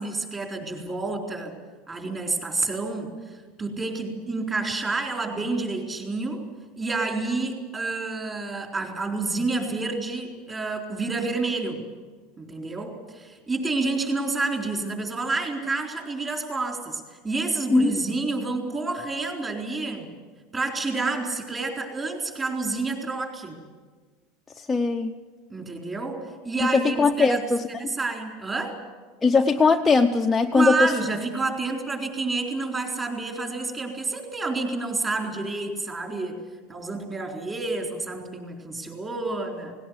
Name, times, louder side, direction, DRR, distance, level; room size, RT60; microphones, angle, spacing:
voice 1, 0.0-1.5 1.9-6.4 6.8-11.8 12.4-20.1 20.5-23.6 25.5-28.8 30.5-36.4 36.7-39.7, right 3 dB, 15° right, 2 dB, 4.0 m, -29 dB
voice 2, 24.6-25.1 26.7-27.9 29.2-30.9, left 4 dB, 10° left, 2 dB, 0.7 m, -20 dB
18.5 x 18.0 x 9.5 m, 1.4 s
supercardioid pair, 150°, 0 cm